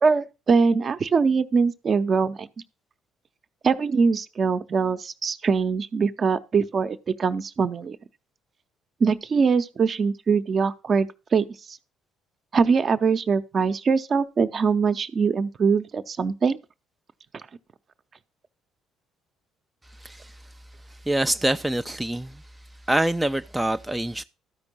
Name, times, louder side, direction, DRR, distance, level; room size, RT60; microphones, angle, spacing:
voice 1, 0.0-2.5 3.6-8.0 9.0-11.8 12.5-16.6, right 5 dB, 45° right, 0.8 m, -22 dB
voice 2, 20.0-20.4 20.9-22.4 22.9-24.2, right 1 dB, 10° right, 0.5 m, -25 dB
13.0 x 5.2 x 6.0 m
figure-of-eight pair, 50°, 0 cm